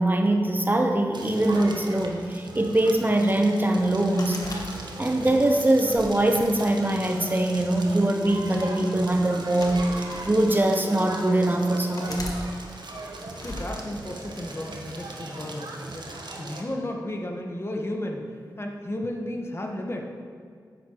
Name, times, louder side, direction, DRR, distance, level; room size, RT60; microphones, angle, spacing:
voice 1, 0.0-4.4 5.0-12.3, right 1 dB, 25° right, 4 dB, 0.8 m, -22 dB
Crackle, 1.1-16.6, right 2 dB, 70° right, 1.1 m, -39 dB
sound 1, 4.2-5.2 5.9-7.0 8.0-8.3 9.3-10.3 11.0-11.1 12.0-12.4 13.3-13.7, left 2 dB, 50° left, 1.4 m, -39 dB
voice 2, 13.4-16.1 16.4-18.3 18.6-20.0, left 1 dB, 35° left, 1 dB, 1.2 m, -33 dB
9.7 x 9.3 x 3.0 m, 2.1 s
cardioid pair, 45°, 8 cm